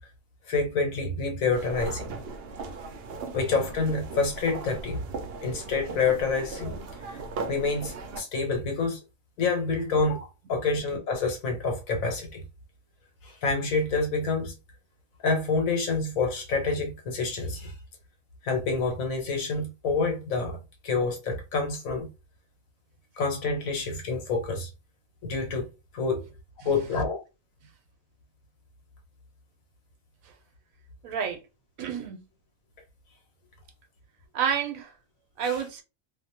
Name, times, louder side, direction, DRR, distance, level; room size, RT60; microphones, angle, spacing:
voice 1, 0.5-2.2 3.3-5.0 5.4-7.2 7.5-9.0 9.4-12.4 13.2-14.6 15.2-17.7 18.4-20.6 20.8-22.1 23.2-24.7 25.2-25.7 25.9-26.3 26.6-27.2, left 4 dB, 80° left, 1.3 m, -27 dB
sound 1, 1.5-8.2, right 4 dB, 65° right, 0.6 m, -38 dB
voice 2, 31.0-31.4 31.8-32.2 34.3-34.9 35.4-35.8, right 7 dB, 85° right, 1.1 m, -29 dB
2.7 x 2.0 x 2.7 m
omnidirectional pair, 1.4 m